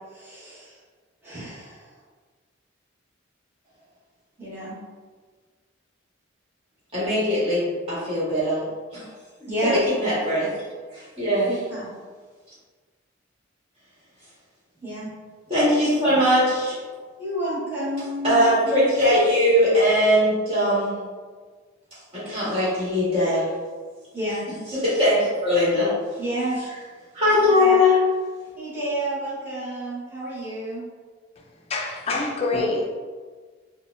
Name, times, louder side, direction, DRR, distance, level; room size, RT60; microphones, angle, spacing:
voice 1, 0.1-0.7 1.2-1.9 4.4-4.8 9.5-9.8 11.5-11.9 14.8-15.1 17.2-18.9 24.1-24.4 26.2-26.7 27.6-27.8 28.6-30.8, right 1 dB, 10° right, -11 dB, 1.0 m, -30 dB
voice 2, 6.9-8.7 8.9-9.0 9.7-10.5 10.9-11.6 15.5-16.8 18.2-21.0 22.1-23.5 24.7-26.0 27.1-28.0 32.5-32.6, left 1 dB, 30° right, -10 dB, 1.4 m, -20 dB
voice 3, 31.7-32.9, left 2 dB, 30° left, -1 dB, 0.4 m, -26 dB
4.1 x 2.1 x 2.5 m, 1.5 s
head